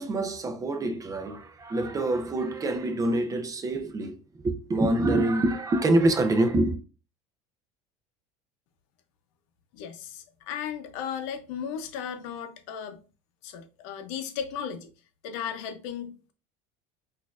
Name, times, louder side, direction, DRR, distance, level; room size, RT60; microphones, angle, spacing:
voice 1, 0.0-6.8, right 2 dB, 20° right, 0.5 m, -26 dB
voice 2, 9.7-13.0 13.4-14.9 15.2-16.3, left 8 dB, 75° left, 0.6 m, -35 dB
4.0 x 2.6 x 2.4 m
supercardioid pair, 115°, 16 cm